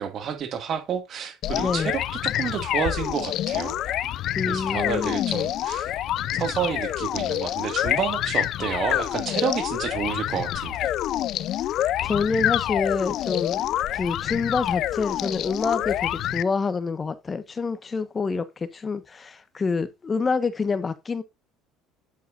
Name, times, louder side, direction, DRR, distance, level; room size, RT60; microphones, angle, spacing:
voice 1, 0.0-3.8 4.5-5.9 6.4-10.9, right 8 dB, 50° right, 2.0 m, -30 dB
sound 1, 1.4-16.4, left 12 dB, 60° left, 0.5 m, -27 dB
voice 2, 1.6-1.9 4.3-5.3 12.0-21.2, left 4 dB, 25° left, 1.2 m, -27 dB
9.4 x 7.6 x 2.5 m
supercardioid pair, 100°, 0 cm